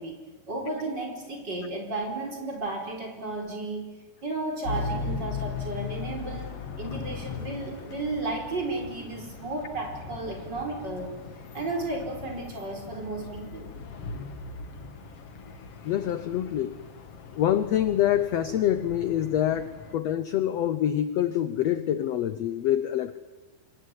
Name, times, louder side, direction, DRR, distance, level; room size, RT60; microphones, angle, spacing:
voice 1, 0.0-3.9 4.2-11.2 11.5-13.7, right 2 dB, 30° right, 2 dB, 5.1 m, -33 dB
sound 1, 4.6-19.9, left 5 dB, 50° left, 2.4 m, -39 dB
voice 2, 15.8-16.8 17.3-23.2, left 11 dB, 75° left, 12 dB, 1.5 m, -26 dB
27.0 x 22.5 x 9.7 m, 1.3 s
omnidirectional pair, 4.2 m